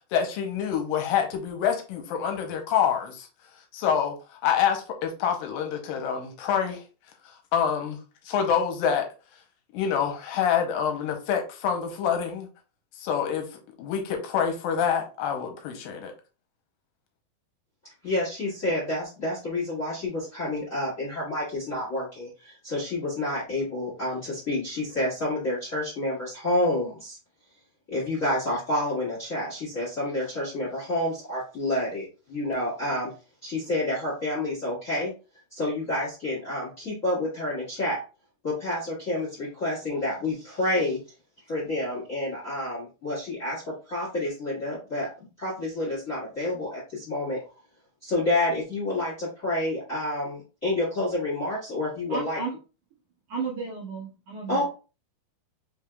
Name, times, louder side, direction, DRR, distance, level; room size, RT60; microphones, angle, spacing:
voice 1, 0.1-3.3 3.7-4.1 4.4-6.8 7.5-8.0 8.3-9.1 9.7-12.5 13.0-13.5 13.8-16.1, left 8 dB, 85° left, 2.4 m, -26 dB
voice 2, 18.0-27.2 27.9-33.1 33.4-35.1 35.5-38.0 38.4-41.0 41.5-45.1 45.4-47.4 48.0-52.4 54.5-54.7, left 1 dB, 35° left, 1.4 m, -29 dB
voice 3, 52.1-52.6 53.3-54.7, right 4 dB, 50° right, 2.9 m, -33 dB
5.4 x 3.5 x 2.3 m
omnidirectional pair, 4.1 m